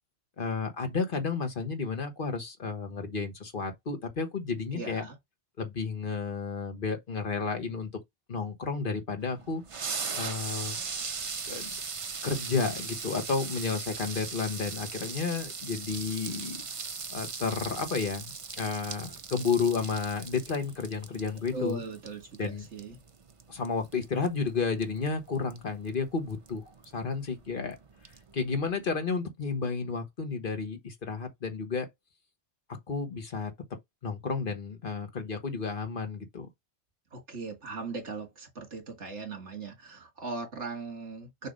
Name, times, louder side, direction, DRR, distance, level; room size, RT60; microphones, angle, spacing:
voice 1, 0.4-5.1 5.6-7.9 8.3-9.6 10.1-10.8 11.5-11.7 12.2-16.6 17.1-21.8 22.4-22.7 23.5-26.6 26.9-27.8 28.3-31.9 32.9-33.5 34.0-36.5, left 5 dB, 50° left, 1.4 m, -32 dB
voice 2, 4.7-5.2 21.5-23.0 37.1-41.5, right 3 dB, 75° right, 2.3 m, -38 dB
sound 1, 9.2-29.0, right 5 dB, 35° right, 0.6 m, -40 dB
6.7 x 2.9 x 5.3 m
omnidirectional pair, 1.2 m